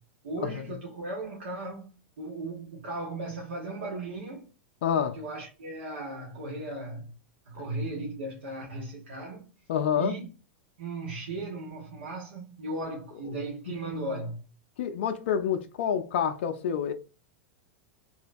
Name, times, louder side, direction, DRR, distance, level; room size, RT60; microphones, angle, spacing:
voice 1, 0.2-4.5 5.1-7.1 7.4-9.5 10.0-10.3 10.8-14.4, right 2 dB, 80° right, 1.0 m, -36 dB
voice 2, 4.8-5.2 9.7-10.1 14.8-16.9, left 8 dB, 70° left, 0.4 m, -27 dB
3.0 x 2.7 x 2.5 m
hypercardioid pair, 105°, 6 cm